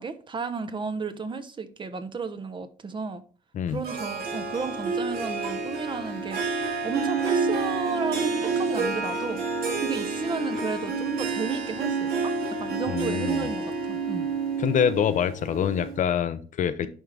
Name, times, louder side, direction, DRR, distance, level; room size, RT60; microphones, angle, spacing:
voice 1, 0.0-3.2 3.7-6.6 6.8-9.4 9.8-14.3, right 5 dB, 30° right, 0.8 m, -33 dB
Harp, 3.8-16.0, right 4 dB, 65° right, 1.8 m, -29 dB
voice 2, 12.9-13.5 14.6-16.9, left 8 dB, 50° left, 0.6 m, -25 dB
10.5 x 3.7 x 3.3 m
cardioid pair, 110°, 17 cm